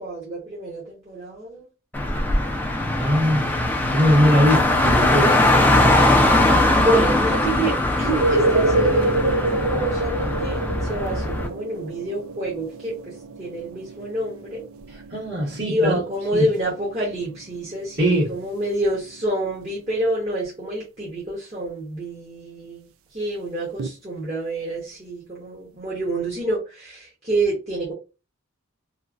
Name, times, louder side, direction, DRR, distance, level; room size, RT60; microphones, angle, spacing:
voice 1, 0.0-1.7 6.4-14.6 15.6-22.9 23.1-27.9, right 1 dB, 30° right, 1.1 m, -27 dB
Car, 1.9-11.5, left 1 dB, 10° left, 0.5 m, -20 dB
voice 2, 3.0-3.5 3.9-5.4 14.9-16.0 16.3-16.5 18.0-18.3, equal, 55° right, 1.6 m, -20 dB
sound 1, 8.0-19.5 23.8-23.9, right 2 dB, 80° right, 0.3 m, -27 dB
3.1 x 2.4 x 2.4 m
head